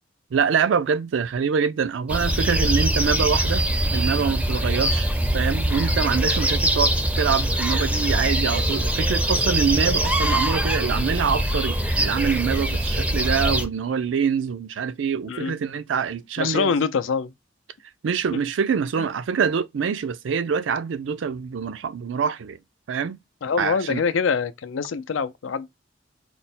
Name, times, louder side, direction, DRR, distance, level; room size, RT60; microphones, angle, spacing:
voice 1, 0.3-3.6 3.9-16.7 18.0-22.6 22.9-23.2 23.6-24.0, right 6 dB, 75° right, 0.4 m, -25 dB
sound 1, 2.1-13.6, right 1 dB, 5° right, 0.4 m, -23 dB
voice 2, 16.4-17.3 18.3-18.4 19.0-19.1 23.4-25.7, left 5 dB, 90° left, 0.5 m, -25 dB
4.3 x 2.1 x 4.1 m
head